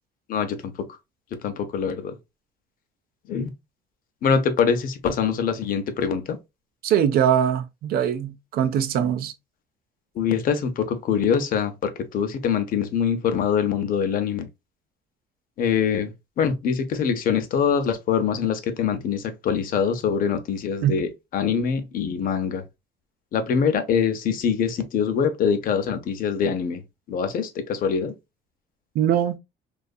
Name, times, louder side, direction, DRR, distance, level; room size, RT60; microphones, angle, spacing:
voice 1, 0.3-0.7 1.4-2.2 3.3-3.5 4.2-6.4 10.2-14.5 15.6-22.6 23.3-26.8 27.1-28.1, left 7 dB, 55° left, 0.5 m, -24 dB
voice 2, 6.8-9.3 20.8-21.0 29.0-29.4, right 9 dB, 65° right, 0.4 m, -22 dB
2.6 x 2.4 x 2.2 m
cardioid pair, 110°, 17 cm